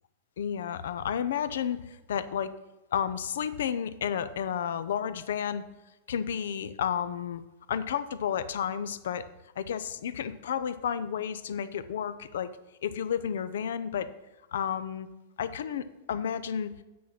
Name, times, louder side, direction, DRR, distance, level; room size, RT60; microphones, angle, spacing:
voice 1, 0.4-2.5 2.9-5.6 6.1-7.4 7.7-9.3 9.6-12.5 12.8-14.1 14.5-15.1 15.4-16.8, left 8 dB, 80° left, 13 dB, 0.6 m, -31 dB
8.4 x 6.3 x 5.9 m, 1.0 s
hypercardioid pair, 130°, 0 cm